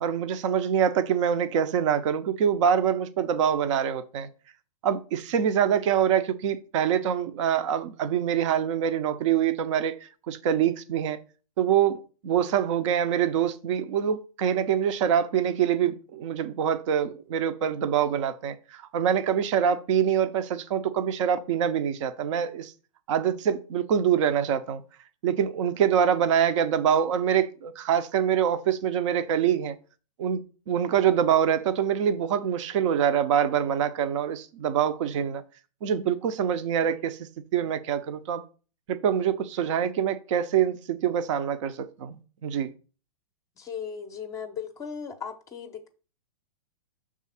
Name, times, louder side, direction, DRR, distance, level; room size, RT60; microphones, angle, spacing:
voice 1, 0.0-4.3 4.8-9.9 10.3-11.2 11.6-22.7 23.1-24.8 25.2-29.8 30.2-30.4 30.7-35.4 35.8-37.2 37.5-38.4 38.9-42.2 42.4-42.7, right 8 dB, 55° right, 0.7 m, -25 dB
voice 2, 43.6-45.9, left 7 dB, 15° left, 0.6 m, -37 dB
5.7 x 3.7 x 5.6 m
hypercardioid pair, 140°, 19 cm